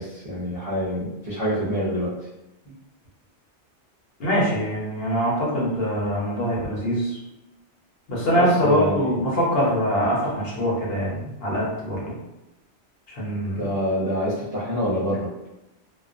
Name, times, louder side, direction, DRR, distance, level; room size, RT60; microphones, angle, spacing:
voice 1, 0.0-2.1 8.3-9.1 13.6-15.3, equal, 45° right, -10 dB, 0.5 m, -26 dB
voice 2, 4.2-7.2 8.1-12.2 13.1-13.7, equal, 60° left, -5 dB, 0.9 m, -23 dB
2.2 x 2.2 x 2.4 m, 0.94 s
omnidirectional pair, 1.2 m